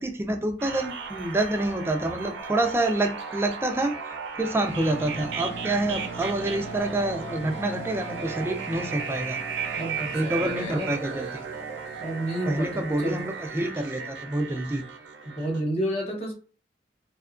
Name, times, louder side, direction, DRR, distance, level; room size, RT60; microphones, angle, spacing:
voice 1, 0.0-9.4 10.1-11.4 12.5-14.8, right 1 dB, 15° right, 5 dB, 0.3 m, -27 dB
sound 1, 0.6-15.6, right 6 dB, 70° right, 0.5 m, -35 dB
sound 2, 4.6-13.7, right 1 dB, 85° left, 1.2 m, -42 dB
voice 2, 9.7-11.0 12.0-13.2 15.2-16.3, right 1 dB, 35° left, -1 dB, 0.8 m, -30 dB
2.8 x 2.3 x 2.4 m, 0.36 s
head